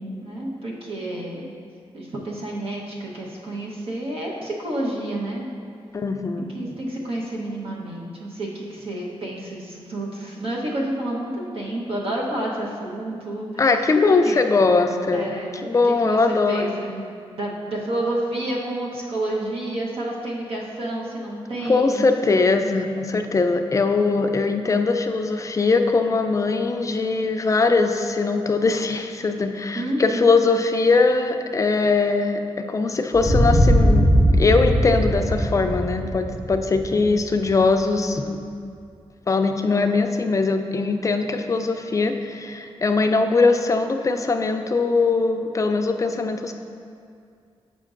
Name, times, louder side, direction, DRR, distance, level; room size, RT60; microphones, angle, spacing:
voice 1, 0.2-1.5 1.9-5.4 6.4-13.9 14.2-14.4 15.1-17.1 17.4-22.1 29.7-30.3, right 1 dB, 65° right, -3 dB, 1.0 m, -29 dB
voice 2, 5.9-6.5 13.6-16.7 21.7-34.1 34.4-38.4 39.3-46.5, left 3 dB, 30° left, 6 dB, 0.3 m, -21 dB
sound 1, 33.1-37.7, equal, 5° right, 1.4 m, -20 dB
7.4 x 5.2 x 2.5 m, 2.4 s
wide cardioid pair, 105°, 10 cm